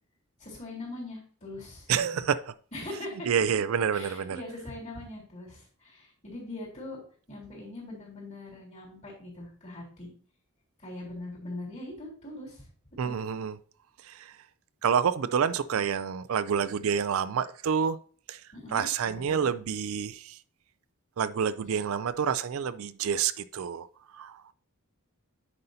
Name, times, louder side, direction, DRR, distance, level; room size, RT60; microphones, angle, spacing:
voice 1, 0.4-2.2 2.7-3.3 3.9-7.0 7.3-10.1 10.8-12.6 13.0-13.2 18.5-19.1, left 2 dB, 35° left, 3.6 m, -41 dB
voice 2, 1.9-2.5 3.2-4.4 13.0-13.6 14.0-14.4 14.8-18.0 18.3-18.4 18.7-20.4 21.2-23.9 24.1-24.4, right 7 dB, 65° right, 0.4 m, -28 dB
9.7 x 5.3 x 2.7 m
head